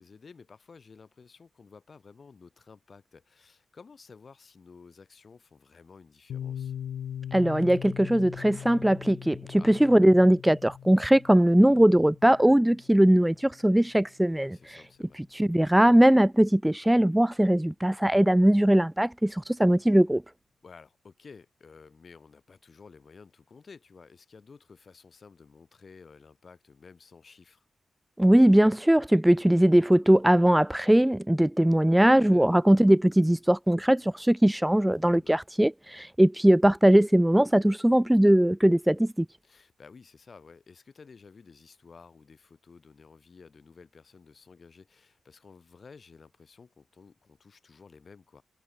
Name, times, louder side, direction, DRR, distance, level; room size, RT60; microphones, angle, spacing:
voice 1, 0.0-6.7 9.6-9.8 10.0-10.1 14.4-15.2 20.6-27.6 31.9-32.5 35.1-35.4 39.4-48.4, left 5 dB, 55° left, 6.9 m, -53 dB
Piano, 6.3-13.7, left 9 dB, 80° left, 4.6 m, -41 dB
voice 2, 7.3-14.6 15.3-20.2 28.2-39.3, right 1 dB, 10° right, 0.4 m, -20 dB
supercardioid pair, 40°, 0 cm